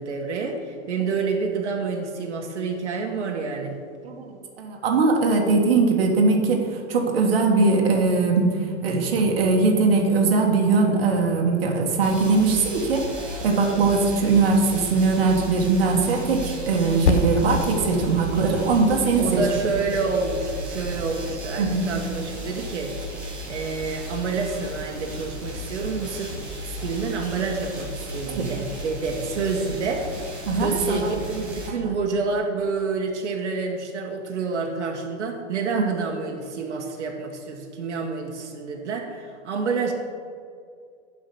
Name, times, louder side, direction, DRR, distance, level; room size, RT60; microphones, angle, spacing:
voice 1, 0.0-3.8 19.2-22.9 23.5-30.0 30.5-39.9, right 4 dB, 80° right, 1 dB, 1.5 m, -28 dB
voice 2, 4.0-6.6 6.9-8.5 8.8-13.0 13.4-19.5 21.6-21.8 28.3-28.5 30.5-31.1 35.7-35.8, right 4 dB, 55° right, 1 dB, 1.6 m, -21 dB
sound 1, 12.0-31.7, equal, 5° right, 0.5 m, -35 dB
Percussion, 17.1-21.9, left 4 dB, 75° left, 1.0 m, -30 dB
11.0 x 5.1 x 6.8 m, 2.3 s
hypercardioid pair, 175°, 35 cm